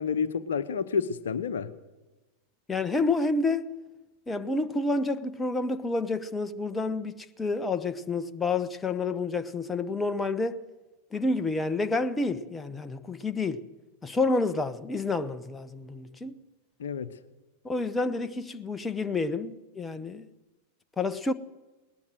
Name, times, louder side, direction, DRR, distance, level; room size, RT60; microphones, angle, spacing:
voice 1, 0.0-1.7 16.8-17.1, left 6 dB, 65° left, 1.0 m, -29 dB
voice 2, 2.7-3.8 4.3-10.6 11.1-13.7 14.0-16.4 17.6-20.3 21.0-21.3, left 3 dB, 10° left, 1.1 m, -29 dB
20.5 x 19.0 x 6.5 m
figure-of-eight pair, 90°, 0 cm